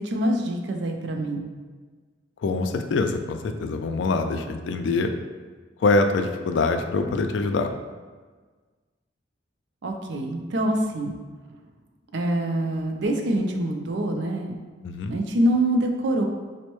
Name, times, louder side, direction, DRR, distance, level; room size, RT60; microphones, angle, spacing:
voice 1, 0.0-1.4 9.8-11.2 12.1-14.6 15.1-16.2, right 1 dB, 60° right, 3 dB, 0.4 m, -25 dB
voice 2, 2.4-5.1 5.8-7.7 14.8-15.1, left 3 dB, 65° left, 6 dB, 0.3 m, -24 dB
5.2 x 2.0 x 3.0 m, 1.4 s
head